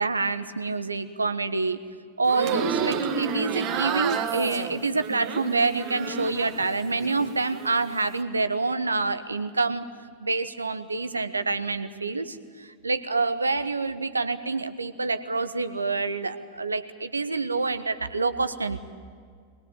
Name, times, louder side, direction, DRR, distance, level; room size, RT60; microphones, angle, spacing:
voice 1, 0.0-1.8 2.2-9.8 10.2-18.8, right 3 dB, 80° right, 11 dB, 1.1 m, -27 dB
sound 1, 2.2-6.7 7.0-7.8, right 7 dB, 40° right, 2.0 m, -30 dB
22.5 x 20.5 x 9.1 m, 2.1 s
figure-of-eight pair, 90°, 0 cm